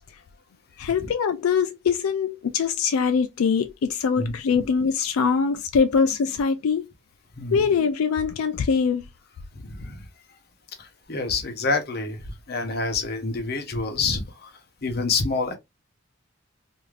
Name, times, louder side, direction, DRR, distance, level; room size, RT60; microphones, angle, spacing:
voice 1, 0.8-6.9 7.5-9.1, left 6 dB, 85° left, 0.4 m, -23 dB
voice 2, 4.2-4.6 7.4-7.6 9.6-10.1 10.8-15.6, left 3 dB, 45° left, 0.7 m, -28 dB
2.6 x 2.4 x 3.1 m
head